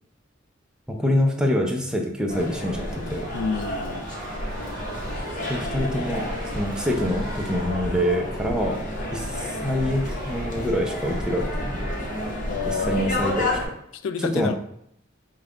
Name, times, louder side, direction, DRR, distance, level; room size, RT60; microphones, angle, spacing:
voice 1, 0.9-3.3 5.5-6.2 6.6-8.8 9.1-11.8 12.7-13.5 14.3-14.6, equal, 5° right, 1 dB, 0.5 m, -25 dB
sound 1, 2.3-13.6, left 1 dB, 45° left, 1.0 m, -30 dB
voice 2, 3.3-4.0 8.5-8.7 12.5-13.5 13.9-14.6, left 5 dB, 85° left, 11 dB, 0.3 m, -29 dB
sound 2, 4.1-7.9 10.0-10.5, right 2 dB, 45° right, 1.0 m, -43 dB
5.4 x 2.3 x 3.7 m, 0.73 s
head